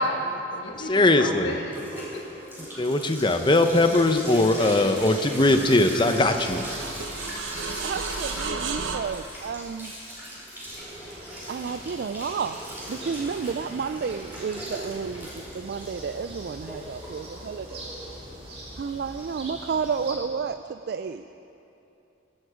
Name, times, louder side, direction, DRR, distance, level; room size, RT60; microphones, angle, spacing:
voice 1, 0.0-2.5, left 1 dB, 75° left, 0 dB, 1.6 m, -32 dB
sound 1, 0.7-19.8, equal, 10° right, 4.7 m, -40 dB
voice 2, 0.9-1.5 2.8-6.7, left 2 dB, 25° left, 7 dB, 0.8 m, -20 dB
sound 2, 3.3-9.0, right 4 dB, 90° right, 1.1 m, -35 dB
voice 3, 7.8-9.9 11.0-17.9 18.8-21.4, right 6 dB, 55° right, 10 dB, 0.3 m, -32 dB
sound 3, 10.6-20.1, right 1 dB, 35° right, 3.0 m, -43 dB
24.0 x 11.0 x 5.0 m, 2.9 s
head